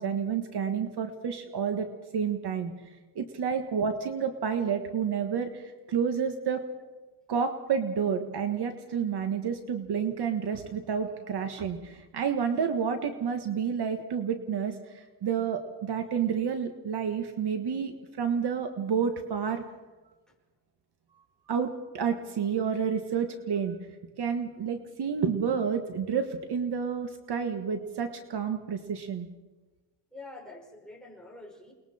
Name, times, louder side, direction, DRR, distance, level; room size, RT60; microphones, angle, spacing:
voice 1, 0.0-1.9 2.1-2.7 3.1-6.6 7.3-19.6 21.5-23.8 24.2-29.3, right 7 dB, 55° right, 6 dB, 1.6 m, -30 dB
voice 2, 30.1-31.7, left 2 dB, ahead, -1 dB, 5.3 m, -46 dB
29.0 x 21.0 x 4.4 m, 1.2 s
cardioid pair, 135°, 47 cm